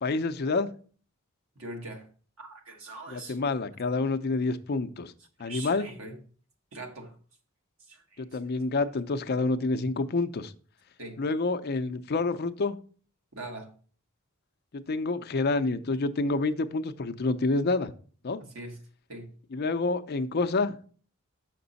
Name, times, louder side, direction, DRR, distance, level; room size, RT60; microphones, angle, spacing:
voice 1, 0.0-0.7 3.1-5.1 5.4-5.9 8.2-10.5 11.2-12.8 14.7-17.9 18.2-18.4 19.5-20.8, left 3 dB, 50° left, 10 dB, 0.5 m, -28 dB
voice 2, 1.5-2.1 2.4-3.4 5.4-6.2 6.7-7.1 7.9-8.2 11.0-11.2 13.3-13.7 18.4-18.8 19.1-19.3, right 2 dB, 75° right, 3 dB, 1.6 m, -42 dB
6.9 x 5.9 x 4.0 m, 0.42 s
head